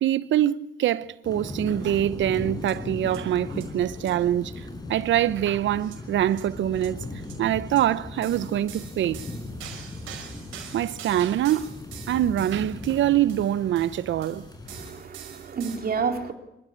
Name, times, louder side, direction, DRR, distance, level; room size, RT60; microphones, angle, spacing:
voice 1, 0.0-7.0 7.4-9.2 10.7-11.8 12.1-14.5, right 12 dB, 70° right, 0.8 m, -24 dB
sound 1, 1.2-14.9, left 2 dB, 20° left, 6.0 m, -38 dB
sound 2, 2.6-2.7 3.1-3.2 3.5-3.7 4.0-4.1 5.8-6.0 6.3-6.4 6.7-6.9 7.2-7.4 7.7-7.8 8.2-15.8, right 9 dB, 85° right, 6.0 m, -45 dB
voice 2, 14.7-16.3, right 5 dB, 50° right, 3.4 m, -30 dB
27.5 x 15.5 x 8.6 m
cardioid pair, 90°, 20 cm